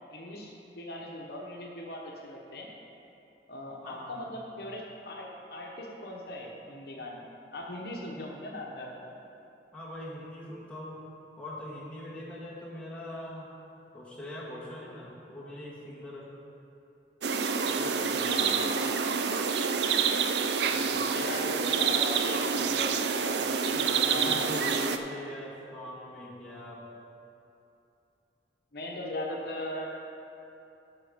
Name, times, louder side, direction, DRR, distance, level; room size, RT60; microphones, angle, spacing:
voice 1, 0.1-2.7 3.5-9.1 18.2-19.1 20.6-24.7 28.7-29.9, left 1 dB, 60° left, -1 dB, 1.1 m, -39 dB
voice 2, 3.8-4.3 8.1-8.4 9.7-11.0 11.4-13.5 13.9-16.3 17.7-18.7 23.7-26.8, left 1 dB, 5° left, -7 dB, 1.7 m, -42 dB
sound 1, 17.2-25.0, right 6 dB, 70° right, 0.5 m, -27 dB
13.0 x 5.4 x 5.1 m, 2.8 s
head